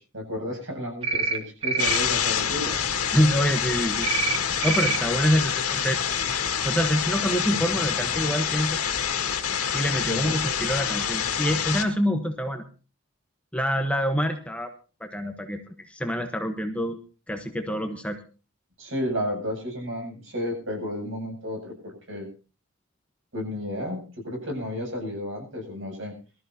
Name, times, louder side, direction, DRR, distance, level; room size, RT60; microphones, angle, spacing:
voice 1, 0.0-2.8 7.5-7.9 10.1-10.4 18.8-22.3 23.3-26.2, left 1 dB, 60° right, 1 dB, 7.9 m, -32 dB
sound 1, 1.0-1.4 1.6-2.0 4.0-4.4 4.6-5.0, right 4 dB, 25° right, 1.5 m, -25 dB
sound 2, 1.8-11.8, left 8 dB, 90° left, 2.0 m, -27 dB
voice 2, 3.1-4.1 4.6-6.1 6.6-8.8 9.7-12.6 13.5-14.7 15.0-17.0 17.3-18.2, equal, 5° left, 5 dB, 1.0 m, -26 dB
23.5 x 13.5 x 2.8 m, 0.35 s
head